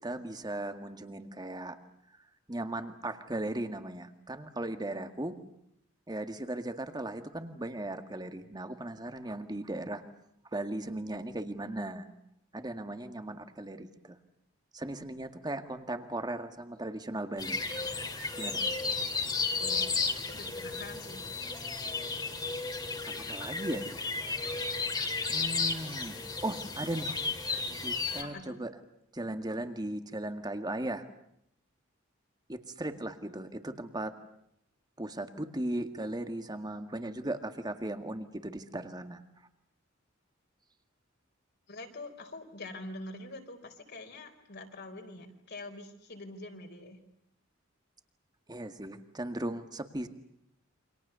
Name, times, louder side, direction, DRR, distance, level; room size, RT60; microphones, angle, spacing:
voice 1, 0.0-1.8 2.5-5.4 6.1-10.0 10.5-12.1 12.5-14.2 14.7-17.6 18.4-18.6 23.0-23.9 25.3-27.2 27.8-28.7 29.1-31.1 32.5-34.2 35.0-39.2 48.5-50.1, right 1 dB, 20° right, 8 dB, 2.0 m, -37 dB
sound 1, 17.4-28.2, left 4 dB, 20° left, 2.5 m, -33 dB
voice 2, 19.5-19.9 20.2-21.2 27.5-27.7 28.2-28.6 41.7-47.0, left 2 dB, 55° left, 5 dB, 4.3 m, -45 dB
29.0 x 26.0 x 7.0 m, 0.75 s
head